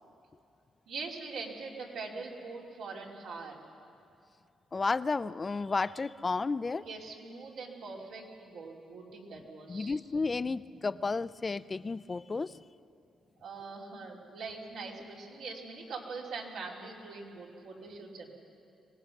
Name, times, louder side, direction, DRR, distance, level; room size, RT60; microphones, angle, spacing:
voice 1, 0.9-3.6 6.8-10.0 13.4-18.3, right 4 dB, 80° right, -2 dB, 3.1 m, -42 dB
voice 2, 4.7-6.8 9.7-12.6, left 4 dB, 35° left, 16 dB, 0.4 m, -32 dB
24.5 x 18.0 x 6.0 m, 2.6 s
cardioid pair, 65°, 0 cm